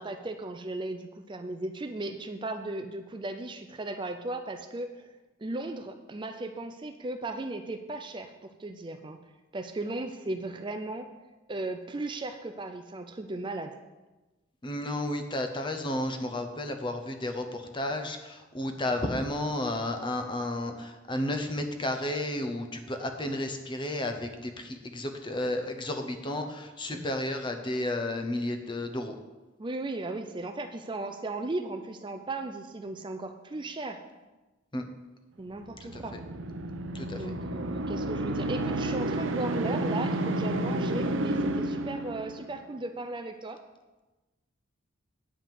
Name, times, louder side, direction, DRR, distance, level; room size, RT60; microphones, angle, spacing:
voice 1, 0.0-5.1 5.4-9.2 9.5-11.1 11.5-13.8 26.9-27.1 29.6-34.0 35.4-36.2 37.2-43.6, right 2 dB, 25° right, 7 dB, 0.4 m, -36 dB
voice 2, 14.6-29.1 34.7-34.8 35.8-36.2 36.9-37.2, left 1 dB, 25° left, 6 dB, 0.8 m, -32 dB
sound 1, 35.7-42.6, right 1 dB, 65° right, 0.6 m, -31 dB
9.3 x 5.1 x 7.5 m, 1.1 s
head